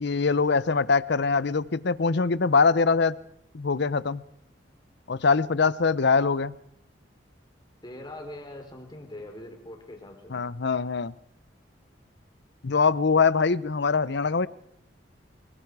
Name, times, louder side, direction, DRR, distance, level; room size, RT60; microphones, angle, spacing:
voice 1, 0.0-3.2 3.5-4.2 5.1-6.6 10.3-11.1 12.6-14.5, left 4 dB, 65° left, 18 dB, 0.7 m, -23 dB
voice 2, 7.8-10.4, left 1 dB, 25° left, 2 dB, 4.3 m, -42 dB
25.5 x 22.0 x 4.9 m, 0.74 s
head